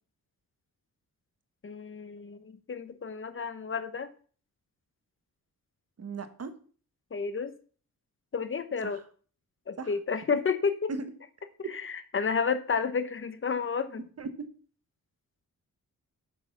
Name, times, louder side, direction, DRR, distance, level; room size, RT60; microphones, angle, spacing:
voice 1, 1.6-4.1 7.1-7.5 8.3-9.0 9.7-10.9 11.7-14.0, left 5 dB, 35° left, 11 dB, 1.1 m, -31 dB
voice 2, 6.0-6.5 8.8-9.0 9.8-9.9 10.9-11.0 14.2-14.5, right 4 dB, 45° right, 9 dB, 1.4 m, -37 dB
8.2 x 6.9 x 6.0 m, 0.43 s
wide cardioid pair, 120°, 34 cm